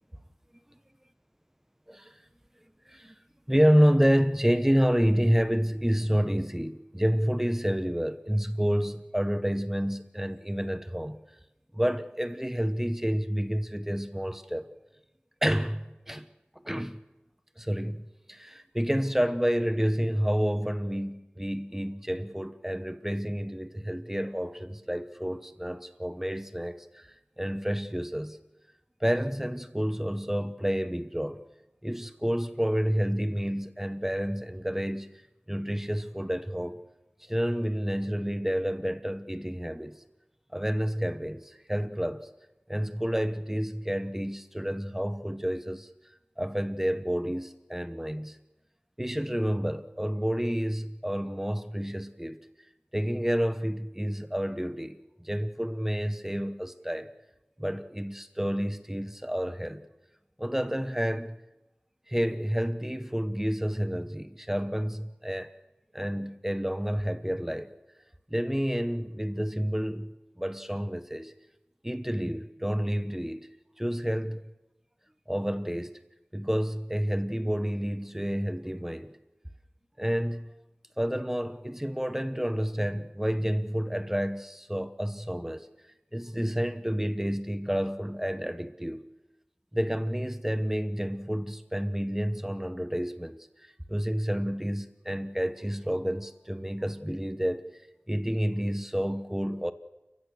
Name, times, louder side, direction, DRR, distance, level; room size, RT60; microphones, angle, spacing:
voice 1, 3.5-11.2 11.7-14.7 15.4-16.3 16.5-17.0 17.6-27.1 27.4-28.4 29.0-31.4 31.8-35.1 35.5-36.9 37.2-40.0 40.5-42.3 42.7-45.9 46.4-48.4 49.0-52.4 52.9-57.1 57.6-59.9 60.4-61.4 62.1-65.5 65.9-67.7 68.3-71.3 71.8-73.5 73.8-74.5 75.3-75.9 76.3-79.2 80.0-80.5 81.0-85.7 86.1-89.1 89.7-97.7 98.1-99.7, equal, 10° right, 1.2 m, -29 dB
29.0 x 16.0 x 6.5 m
wide cardioid pair, 40°, 4 cm